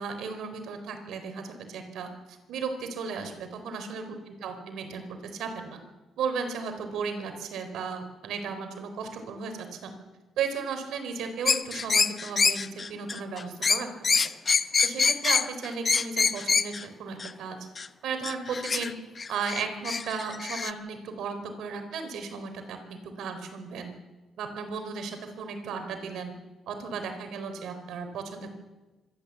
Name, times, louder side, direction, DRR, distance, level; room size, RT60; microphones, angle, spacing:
voice 1, 0.0-4.1 4.4-5.1 5.3-5.8 6.2-9.9 10.4-14.2 14.8-17.6 18.0-19.0 19.3-23.9 24.4-26.3 26.7-28.5, right 5 dB, 80° right, 6 dB, 4.2 m, -35 dB
sound 1, 11.5-16.8 17.2-17.3 17.8-17.9 18.2-18.9 19.2-20.7, left 5 dB, 35° left, 0.9 m, -25 dB
25.5 x 13.0 x 8.4 m, 1.1 s
cardioid pair, 90°, 0 cm